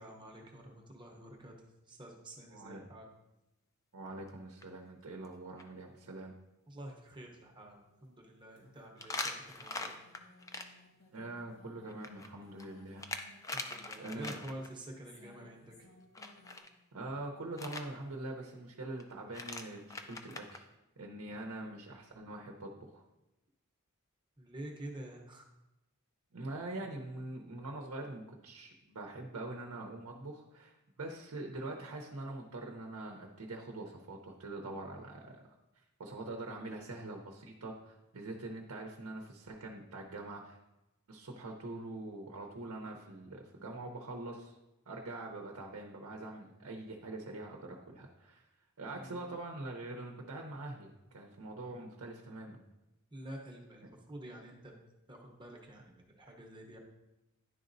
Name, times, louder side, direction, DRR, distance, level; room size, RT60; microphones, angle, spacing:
voice 1, 0.0-3.1 6.7-10.0 13.5-15.9 24.4-25.4 48.9-49.3 53.1-54.7 55.1-56.8, right 1 dB, 20° right, 0 dB, 0.8 m, -48 dB
voice 2, 2.5-2.8 3.9-6.3 11.1-13.1 14.0-14.4 16.9-20.6 21.0-23.0 26.3-35.4 36.0-40.6 41.1-44.5 44.9-48.5 48.8-52.6, right 2 dB, 70° right, 1 dB, 0.7 m, -44 dB
sound 1, 4.1-4.3 4.6-4.7 5.2-5.3 5.6-5.7 9.0-10.6 11.9-14.7 16.1-16.7 17.6-17.8 19.0-19.1 19.3-20.6, left 3 dB, 15° left, 0.4 m, -42 dB
sound 2, 7.4-16.6, left 2 dB, 70° left, 1.7 m, -62 dB
10.5 x 4.0 x 2.6 m, 0.96 s
head